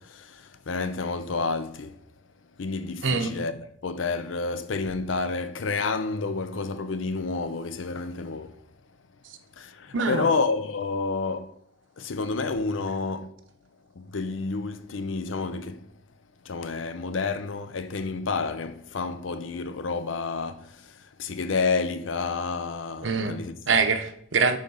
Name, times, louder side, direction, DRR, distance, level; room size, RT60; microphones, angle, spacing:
voice 1, 0.0-2.1 2.6-8.6 9.6-11.5 12.0-13.3 14.0-15.9 16.4-23.5, left 4 dB, 85° left, 0.6 m, -30 dB
voice 2, 3.0-3.3 9.9-10.3 23.0-23.3 23.7-24.6, right 4 dB, 80° right, 0.9 m, -24 dB
9.0 x 3.8 x 5.4 m
head